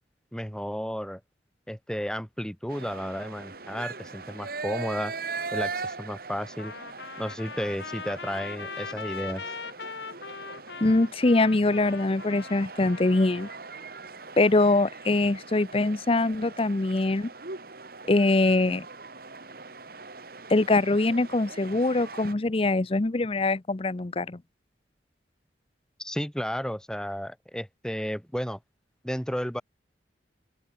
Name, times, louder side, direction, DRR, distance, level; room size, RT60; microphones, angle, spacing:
voice 1, 0.3-1.2 1.7-5.1 5.5-6.7 7.2-9.5 26.0-28.6 29.0-29.6, equal, 5° left, 3.5 m, -33 dB
sound 1, 2.7-22.3, right 4 dB, 55° right, 2.5 m, -40 dB
Trumpet, 6.6-13.6, left 5 dB, 80° left, 1.8 m, -40 dB
voice 2, 10.8-13.5 14.4-17.3 18.1-18.9 20.5-24.4, left 2 dB, 30° left, 0.6 m, -23 dB
open air
head